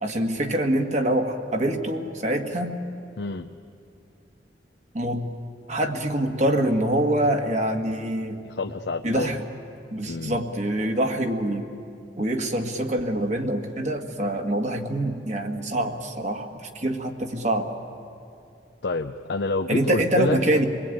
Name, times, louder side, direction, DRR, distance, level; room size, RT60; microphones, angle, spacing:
voice 1, 0.0-2.8 4.9-5.2 5.7-8.4 9.0-9.4 9.9-11.7 12.2-17.7 19.7-20.6, right 1 dB, 40° right, 4 dB, 1.8 m, -25 dB
voice 2, 3.2-3.5 8.4-9.4 10.1-10.4 18.8-20.4, left 3 dB, 65° left, 6 dB, 0.7 m, -28 dB
27.0 x 20.5 x 9.3 m, 2.6 s
head